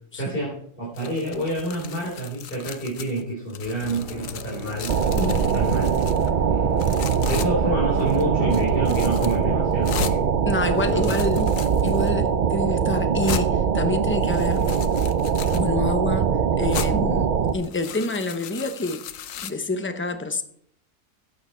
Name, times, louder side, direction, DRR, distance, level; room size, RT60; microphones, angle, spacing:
voice 1, 0.1-4.9 5.4-5.9 6.5-7.0 7.3-10.2 10.9-11.1, right 1 dB, 45° left, 4.2 m, -28 dB
sound 1, 1.0-3.2 3.5-6.3 6.8-7.5 8.0-8.2 8.5-9.4 9.8-10.2 10.8-12.1 12.7-12.8 13.2-13.5 14.2-15.7 16.7-16.9 17.5-19.5, left 9 dB, 85° left, 1.2 m, -36 dB
sound 2, 3.8-9.3, equal, 25° right, 4.7 m, -38 dB
sound 3, 4.9-17.5, right 7 dB, 50° right, 0.6 m, -22 dB
voice 2, 5.2-5.5 10.5-14.7 15.5-19.1 19.4-20.4, left 2 dB, 10° left, 0.7 m, -28 dB
14.5 x 8.8 x 4.4 m
omnidirectional pair, 1.3 m